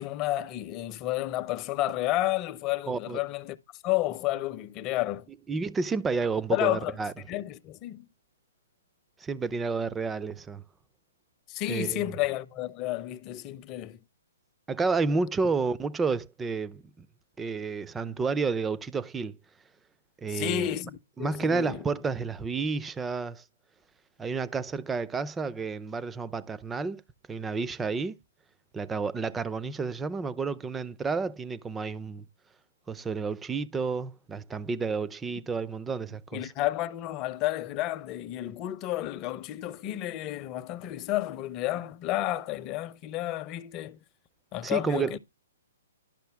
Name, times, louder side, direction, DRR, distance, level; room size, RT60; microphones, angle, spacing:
voice 1, 0.0-3.6 3.8-5.3 6.5-7.0 7.2-8.1 11.5-14.0 20.3-21.8 36.3-44.0 44.5-45.2, left 15 dB, 30° left, 0.7 m, -31 dB
voice 2, 2.9-3.2 5.5-7.1 9.2-10.6 11.7-12.1 14.7-17.1 17.4-19.4 20.2-20.8 21.2-23.4 24.2-27.0 27.3-28.2 28.7-32.2 32.9-36.5 44.6-45.2, right 4 dB, 10° right, 0.5 m, -30 dB
12.0 x 5.6 x 3.4 m
hypercardioid pair, 140°, 0 cm